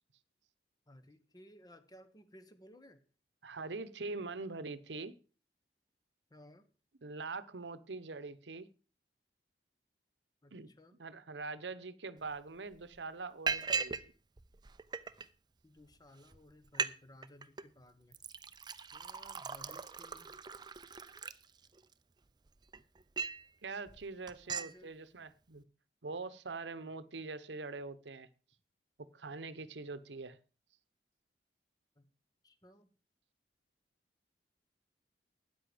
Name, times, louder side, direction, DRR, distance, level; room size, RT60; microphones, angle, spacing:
voice 1, 0.9-3.0 6.3-6.7 10.4-10.9 15.6-18.2 18.9-20.3 24.4-25.0 32.0-32.1 32.4-32.9, left 1 dB, 20° left, 1.3 m, -58 dB
voice 2, 3.4-5.2 7.0-8.7 10.5-10.7 11.0-13.9 23.6-25.6 26.0-28.3 29.0-30.4, right 3 dB, 85° right, 0.9 m, -43 dB
Liquid, 12.3-12.4 12.7-13.0 13.5-14.1 14.4-15.3 15.9-16.0 16.3-16.4 16.6-16.9 17.2-17.6 18.1-21.9 22.5-23.5 23.9-24.0 24.3-24.7, right 5 dB, 25° right, 0.6 m, -39 dB
13.0 x 9.7 x 5.0 m
head